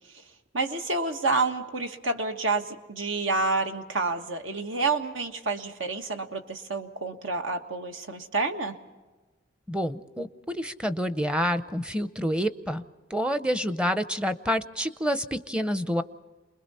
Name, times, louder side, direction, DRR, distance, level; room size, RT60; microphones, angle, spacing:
voice 1, 0.5-8.7, right 3 dB, 85° right, 5 dB, 1.5 m, -29 dB
voice 2, 9.7-12.8 13.1-16.0, equal, 5° right, 11 dB, 0.6 m, -28 dB
28.5 x 21.5 x 4.2 m, 1.3 s
head